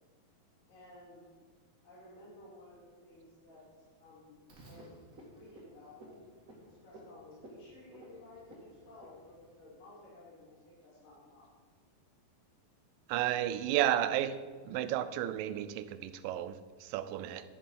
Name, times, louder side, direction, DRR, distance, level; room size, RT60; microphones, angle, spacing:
voice 1, 0.7-1.3 1.8-6.2 6.6-11.5, left 2 dB, 65° left, -7 dB, 4.0 m, -55 dB
Frog, 4.5-9.7, right 1 dB, 35° right, 1.5 m, -55 dB
voice 2, 13.1-14.4 14.7-17.4, right 12 dB, 80° right, 12 dB, 2.1 m, -32 dB
10.5 x 7.1 x 5.4 m, 1.4 s
omnidirectional pair, 4.1 m